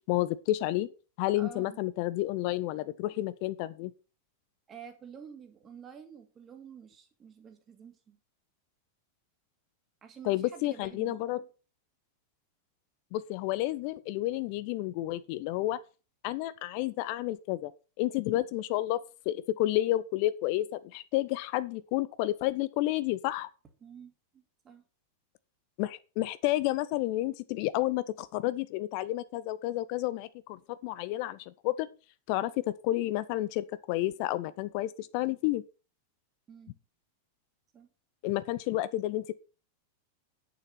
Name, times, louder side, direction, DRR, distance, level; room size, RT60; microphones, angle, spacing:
voice 1, 0.1-0.9 1.2-3.9 10.2-11.4 13.1-15.8 16.2-17.7 18.0-19.0 19.3-23.5 25.8-31.9 32.3-35.6 38.2-39.3, left 16 dB, 45° left, 0.5 m, -30 dB
voice 2, 1.3-1.8 4.7-8.2 10.0-11.2 23.8-24.8 36.5-36.8 37.7-37.9, right 7 dB, 25° right, 2.3 m, -49 dB
9.0 x 6.9 x 5.8 m
figure-of-eight pair, 90°, 0 cm